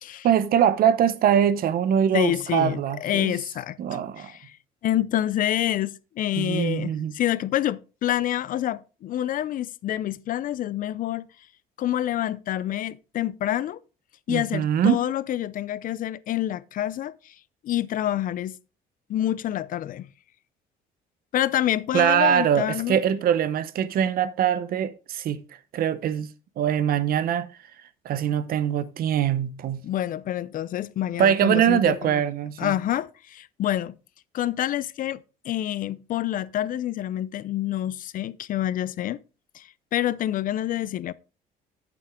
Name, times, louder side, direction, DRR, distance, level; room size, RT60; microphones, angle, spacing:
voice 1, 0.2-3.3 3.8-4.3 6.4-7.1 14.3-15.0 21.9-25.4 25.7-26.3 26.6-27.5 28.0-29.8 31.2-32.7, right 9 dB, 60° right, 0.8 m, -23 dB
voice 2, 2.1-3.8 4.2-4.6 4.8-11.3 11.8-13.8 14.3-17.3 17.6-18.6 19.1-20.1 21.3-23.0 29.8-32.2 32.6-34.0 34.3-35.2 35.4-39.2 39.5-41.1, left 12 dB, 55° left, 0.5 m, -27 dB
8.5 x 7.8 x 3.6 m
cardioid pair, 110°, 17 cm